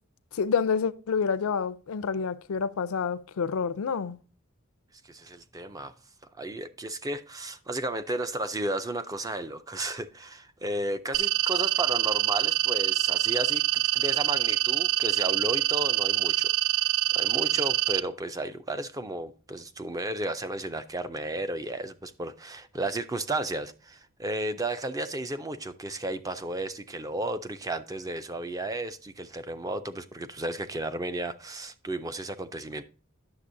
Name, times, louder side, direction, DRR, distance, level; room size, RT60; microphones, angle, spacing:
voice 1, 0.3-4.2, left 6 dB, 90° left, 0.4 m, -28 dB
voice 2, 5.0-5.9 6.3-16.9 17.1-32.8, right 2 dB, 15° right, 0.4 m, -33 dB
sound 1, 11.1-18.0, right 14 dB, 80° right, 0.4 m, -25 dB
9.7 x 6.7 x 2.6 m
head